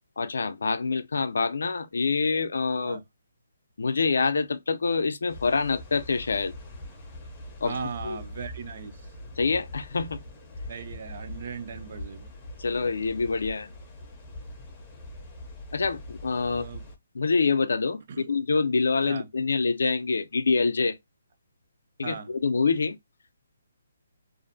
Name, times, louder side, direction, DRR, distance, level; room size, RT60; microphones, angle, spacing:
voice 1, 0.2-3.0 3.8-6.5 7.6-7.8 8.0-8.2 9.4-10.2 12.6-13.7 15.7-16.7 17.1-21.0 22.0-23.0, left 4 dB, 75° left, 0.4 m, -26 dB
sound 1, 5.3-17.0, left 1 dB, 10° left, 0.5 m, -43 dB
voice 2, 7.6-8.9 10.7-12.3 16.5-16.8 18.1-18.3 19.1-19.3 22.0-22.3, right 6 dB, 40° right, 0.4 m, -38 dB
2.5 x 2.0 x 2.5 m
hypercardioid pair, 170°, 0 cm